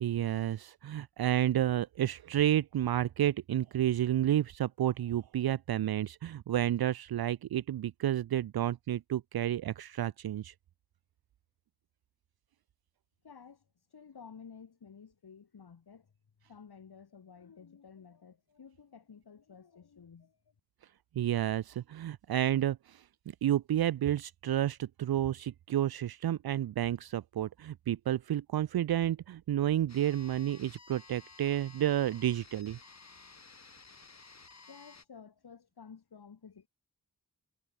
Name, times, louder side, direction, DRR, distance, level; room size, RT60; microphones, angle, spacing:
voice 1, 0.0-10.5 21.1-32.8, right 11 dB, 75° right, 0.5 m, -30 dB
voice 2, 13.2-16.1 16.5-20.4 34.7-36.7, left 6 dB, 85° left, 3.7 m, -53 dB
sound 1, 29.9-35.0, left 4 dB, 45° left, 2.3 m, -54 dB
cardioid pair, 50°, 37 cm